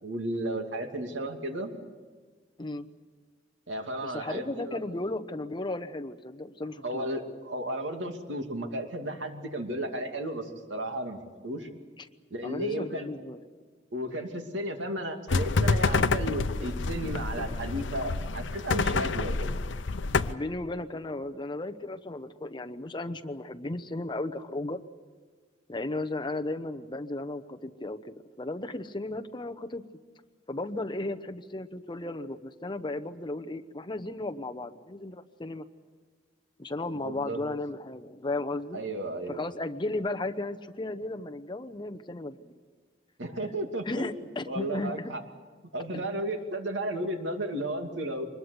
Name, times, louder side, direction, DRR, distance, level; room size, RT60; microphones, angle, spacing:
voice 1, 0.0-1.7 3.7-4.8 6.8-11.7 12.3-13.1 13.9-19.6 37.0-37.4 38.7-39.4 43.2-44.1 44.5-45.2 45.7-48.3, right 1 dB, 85° right, 5 dB, 2.6 m, -34 dB
voice 2, 4.0-7.1 12.0-12.1 12.4-13.4 20.2-24.8 25.7-29.8 30.5-35.6 36.6-38.8 39.3-42.5 43.8-45.1 45.9-46.0, left 2 dB, 25° left, 8 dB, 0.9 m, -35 dB
sound 1, 15.3-20.3, left 3 dB, 85° left, 0.8 m, -28 dB
25.0 x 21.0 x 8.2 m, 1.5 s
head